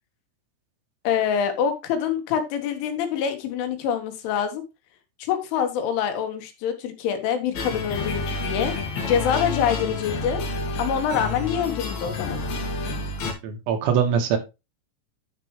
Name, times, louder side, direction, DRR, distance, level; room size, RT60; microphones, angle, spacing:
voice 1, 1.1-4.6 5.2-8.7 9.1-10.4 10.8-12.4, left 8 dB, 75° left, 6 dB, 3.7 m, -25 dB
sound 1, 7.5-13.3, left 3 dB, 55° left, 3.2 m, -29 dB
voice 2, 13.4-14.4, right 7 dB, 75° right, 6 dB, 3.5 m, -22 dB
10.5 x 6.8 x 3.1 m, 0.25 s
omnidirectional pair, 5.8 m